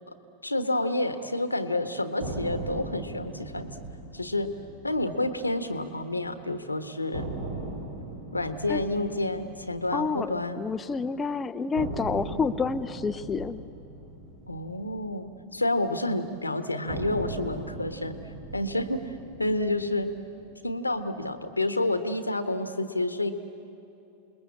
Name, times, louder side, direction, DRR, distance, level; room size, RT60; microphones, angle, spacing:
voice 1, 0.4-3.7 4.1-4.5 4.8-7.3 8.3-10.6 14.5-18.2 18.5-20.1 20.6-23.3, left 2 dB, 85° left, 10 dB, 1.2 m, -29 dB
sound 1, 2.2-6.3 6.6-6.7 7.1-11.2 11.8-16.1 16.9-21.2, right 2 dB, 65° right, 3.2 m, -39 dB
voice 2, 9.9-13.6, left 5 dB, 20° left, 8 dB, 0.6 m, -29 dB
28.0 x 21.0 x 8.6 m, 2.8 s
figure-of-eight pair, 90°, 0 cm